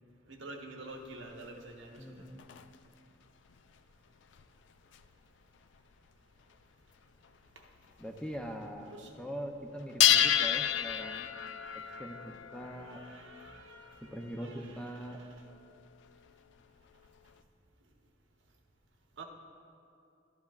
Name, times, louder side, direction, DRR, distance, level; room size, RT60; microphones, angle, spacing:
voice 1, 0.3-2.3 7.5-7.7 8.9-9.1 12.6-15.3 19.2-19.3, right 2 dB, 80° right, 2 dB, 1.0 m, -49 dB
sound 1, 1.0-2.9 3.5-5.1 5.7-6.1 6.5-6.6 6.9-7.0 7.2-8.3 8.6-9.2 9.5-17.4, left 10 dB, 70° left, 0.3 m, -33 dB
voice 2, 2.0-2.4 8.0-8.9 9.1-11.3 11.7-13.0 14.0-15.2, equal, 5° left, 3 dB, 0.5 m, -42 dB
13.0 x 11.0 x 2.4 m, 2.5 s
head